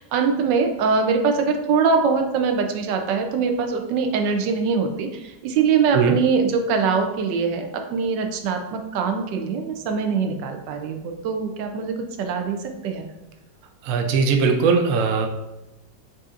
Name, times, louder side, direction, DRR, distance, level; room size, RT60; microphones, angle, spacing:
voice 1, 0.0-13.1, right 5 dB, 90° right, 4 dB, 1.3 m, -23 dB
voice 2, 13.8-15.3, right 5 dB, 65° right, 4 dB, 0.8 m, -19 dB
7.5 x 2.7 x 2.5 m, 0.95 s
omnidirectional pair, 1.9 m